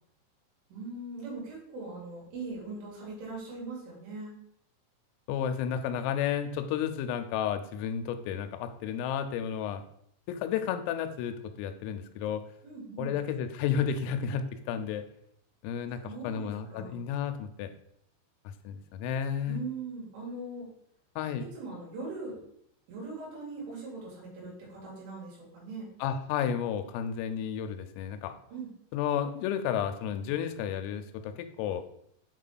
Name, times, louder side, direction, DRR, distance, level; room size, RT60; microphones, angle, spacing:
voice 1, 0.7-4.3 12.6-13.2 16.0-17.0 19.5-20.7 21.5-22.4 22.9-25.9 28.5-28.7, right 3 dB, 70° right, -5 dB, 4.8 m, -40 dB
voice 2, 5.3-9.8 10.3-12.4 13.0-15.0 15.6-17.7 18.6-19.6 21.2-21.5 26.0-28.4 28.9-31.8, left 8 dB, 85° left, 8 dB, 3.3 m, -32 dB
8.7 x 3.7 x 4.0 m, 0.71 s
omnidirectional pair, 5.9 m